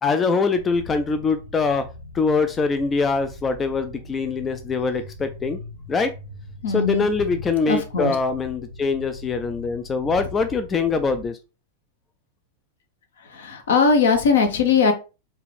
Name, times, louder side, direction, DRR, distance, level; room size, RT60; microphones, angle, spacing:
voice 1, 0.0-1.9 2.1-5.6 5.9-6.1 6.7-11.4, left 4 dB, 20° left, 9 dB, 0.3 m, -23 dB
sound 1, 0.5-11.3, left 1 dB, 80° left, 1.2 m, -41 dB
voice 2, 6.6-7.1 7.7-8.2 13.2-14.9, left 5 dB, 65° left, 6 dB, 0.8 m, -20 dB
4.4 x 2.4 x 3.3 m, 0.31 s
figure-of-eight pair, 90°, 0 cm